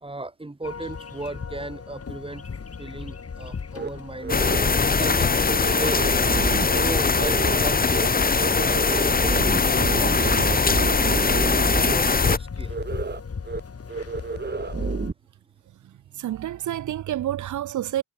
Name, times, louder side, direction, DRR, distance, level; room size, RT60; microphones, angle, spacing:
voice 1, 0.0-2.5 2.8-4.5 4.9-6.0 6.7-10.9 11.7-12.8, right 2 dB, 15° right, 3.4 m, -36 dB
sound 1, 0.6-15.1, left 5 dB, 50° left, 5.3 m, -36 dB
sound 2, 3.7-3.9 4.2-4.7 5.0-5.1 5.4-6.8 7.1-7.7 7.9-8.1 8.3-11.9 12.2-12.4 12.7-13.2 13.5-13.6 13.9-15.1, right 4 dB, 35° right, 2.0 m, -30 dB
sound 3, 4.3-12.4, left 4 dB, 30° left, 1.2 m, -21 dB
voice 2, 16.1-18.0, right 12 dB, 75° right, 0.9 m, -28 dB
supercardioid pair, 50°, 30 cm